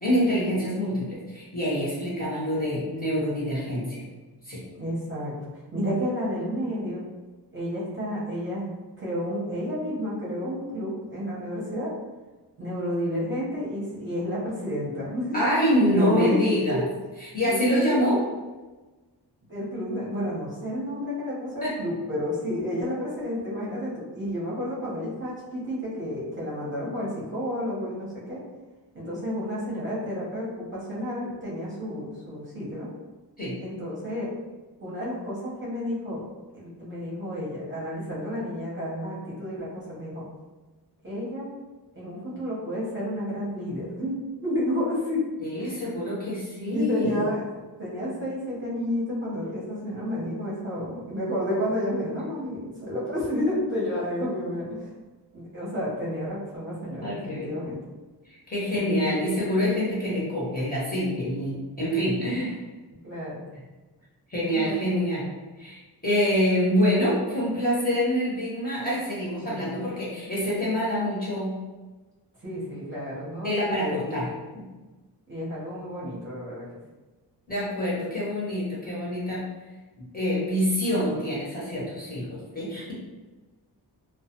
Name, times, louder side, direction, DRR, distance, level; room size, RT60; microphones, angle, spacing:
voice 1, 0.0-4.0 4.4-4.6 15.3-16.8 17.2-18.2 21.6-21.7 33.4-33.5 45.4-47.2 57.0-57.5 58.5-62.6 64.3-65.3 65.6-71.6 73.4-74.3 74.5-74.6 77.5-79.4 80.1-82.9, equal, 20° left, -8 dB, 1.0 m, -26 dB
voice 2, 4.8-7.0 7.5-8.7 9.0-11.9 12.6-15.4 15.8-16.8 17.4-18.1 19.5-28.4 28.9-32.9 33.6-34.3 34.8-36.2 36.5-40.2 41.0-41.5 41.9-45.3 45.6-45.8 46.7-54.9 55.3-57.8 58.7-59.3 63.0-63.4 64.5-65.0 69.4-69.7 72.4-74.3 75.3-76.6, left 1 dB, 30° right, -7 dB, 0.8 m, -31 dB
2.3 x 2.2 x 2.8 m, 1.2 s
wide cardioid pair, 90°, 42 cm